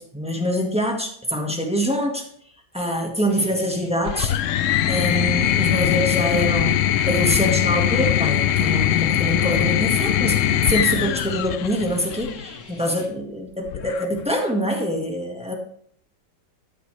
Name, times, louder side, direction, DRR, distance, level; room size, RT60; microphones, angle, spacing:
voice 1, 0.0-2.2 2.7-4.3 4.9-15.5, equal, 5° right, 1 dB, 1.5 m, -25 dB
Guitar, 3.3-13.1, left 2 dB, 50° left, 2.1 m, -42 dB
sound 1, 4.1-12.5 13.7-14.3, left 11 dB, 80° left, 0.7 m, -21 dB
12.5 x 9.6 x 3.3 m, 0.64 s
omnidirectional pair, 1.9 m